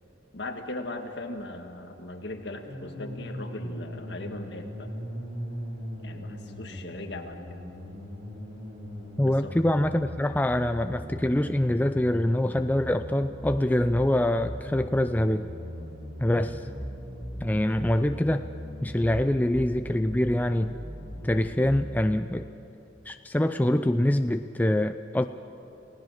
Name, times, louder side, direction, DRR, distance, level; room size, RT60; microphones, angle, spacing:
voice 1, 0.3-4.9 6.0-7.6 9.2-9.5, left 2 dB, 60° left, 4 dB, 1.8 m, -39 dB
sound 1, 2.7-22.1, equal, 75° right, 6.3 m, -39 dB
voice 2, 9.2-15.5 16.2-16.7 17.4-18.4 18.8-20.7 21.2-22.4 23.1-25.3, left 1 dB, 10° left, 8 dB, 0.4 m, -25 dB
29.5 x 17.5 x 6.6 m, 2.9 s
head